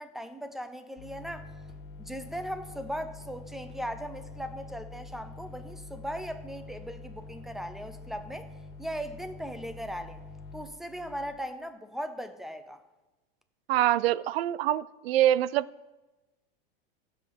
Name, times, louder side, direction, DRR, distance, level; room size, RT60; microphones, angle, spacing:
voice 1, 0.0-1.5 2.0-8.5 8.8-10.2 10.5-12.8, equal, ahead, 10 dB, 0.8 m, -38 dB
sound 1, 1.0-11.3, left 3 dB, 35° left, 2.5 m, -46 dB
voice 2, 13.7-15.7, right 13 dB, 80° right, 20 dB, 0.6 m, -25 dB
15.5 x 7.4 x 5.8 m, 1.1 s
supercardioid pair, 140°, 30 cm